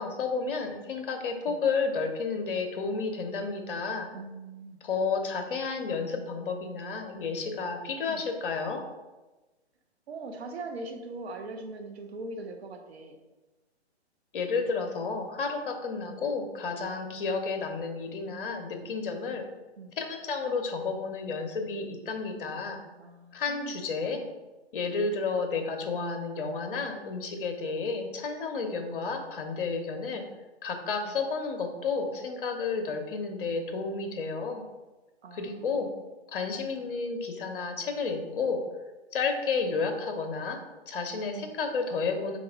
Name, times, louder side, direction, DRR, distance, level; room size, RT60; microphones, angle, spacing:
voice 1, 0.0-4.1 4.8-8.8 14.3-19.4 20.0-22.8 23.3-24.2 24.7-30.2 30.6-34.6 35.3-35.9 36.3-38.6 39.1-40.6 40.9-42.4, left 4 dB, 50° left, 5 dB, 0.8 m, -31 dB
voice 2, 4.1-4.8 8.1-8.3 10.1-13.2 19.8-19.9 23.0-23.7 24.1-24.2 28.7-28.8 31.1-31.2 35.2-35.8 41.3-41.6, right 2 dB, 65° right, 5 dB, 0.8 m, -41 dB
4.0 x 2.4 x 4.5 m, 1.1 s
figure-of-eight pair, 130°, 33 cm